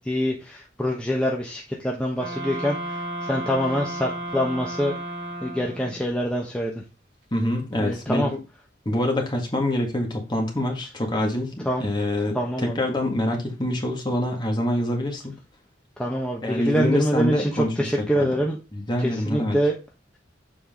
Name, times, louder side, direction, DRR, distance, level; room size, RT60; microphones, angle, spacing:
voice 1, 0.1-4.9 5.4-6.8 7.8-8.3 11.6-11.8 12.3-12.8 16.0-17.5 17.8-18.6 19.0-19.7, equal, 5° left, -2 dB, 1.0 m, -25 dB
sound 1, 2.2-6.0, right 1 dB, 60° right, 2.7 m, -33 dB
voice 2, 7.3-8.4 8.9-15.3 16.4-18.4 18.7-19.6, left 1 dB, 25° left, 2 dB, 1.8 m, -26 dB
7.3 x 5.0 x 3.7 m, 0.29 s
head